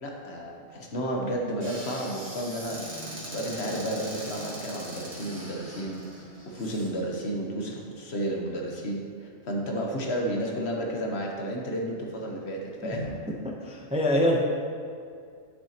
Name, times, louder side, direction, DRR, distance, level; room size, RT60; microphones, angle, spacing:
voice 1, 0.0-2.9 3.3-13.2, right 1 dB, 60° left, 0 dB, 1.3 m, -32 dB
Squeak / Cupboard open or close, 1.6-6.9, right 1 dB, 80° right, 2.2 m, -40 dB
voice 2, 13.4-14.4, left 1 dB, 10° right, -1 dB, 0.5 m, -25 dB
10.0 x 6.8 x 2.9 m, 2.2 s
omnidirectional pair, 1.3 m